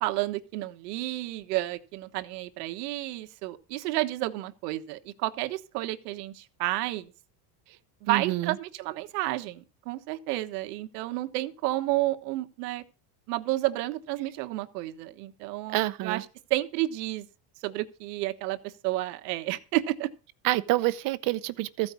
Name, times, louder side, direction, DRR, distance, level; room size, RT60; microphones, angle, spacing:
voice 1, 0.0-7.1 8.0-12.8 13.3-16.2 16.5-17.3 17.6-20.1, right 17 dB, 85° right, 1.4 m, -31 dB
voice 2, 8.1-8.6 15.7-16.2 20.4-21.9, right 17 dB, 45° right, 0.8 m, -27 dB
14.5 x 5.4 x 8.2 m
cardioid pair, 150°, 46 cm